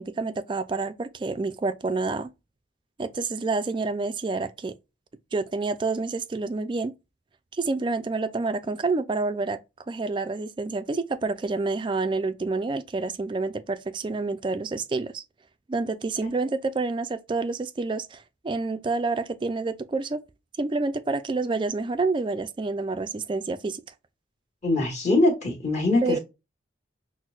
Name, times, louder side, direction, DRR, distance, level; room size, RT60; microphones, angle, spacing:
voice 1, 0.0-2.3 3.0-4.8 5.3-7.0 7.5-9.6 9.9-15.2 15.7-20.2 20.6-23.8 26.0-26.2, right 3 dB, 25° right, 0.3 m, -28 dB
voice 2, 24.6-26.2, left 2 dB, 40° left, 1.4 m, -22 dB
6.1 x 2.1 x 2.4 m
head